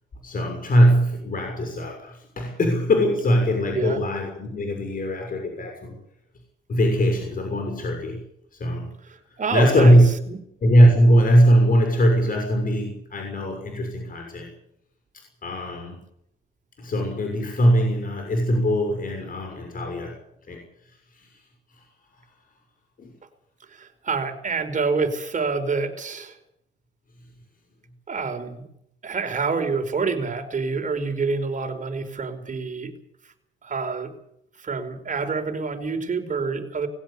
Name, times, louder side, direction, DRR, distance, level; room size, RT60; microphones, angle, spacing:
voice 1, 0.2-6.0 6.7-8.2 8.6-8.9 9.5-10.1 10.6-14.5 15.4-16.0 16.8-20.1 20.5-20.6 21.1-21.4 21.8-21.9 23.0-23.1, equal, 45° left, 3 dB, 6.4 m, -20 dB
voice 2, 9.4-9.9 10.3-10.4 23.7-26.4 28.1-28.7 29.0-32.9 33.6-34.1 34.6-36.9, right 4 dB, 40° right, 6 dB, 4.7 m, -27 dB
20.0 x 17.0 x 8.4 m, 0.75 s
cardioid pair, 90°, 20 cm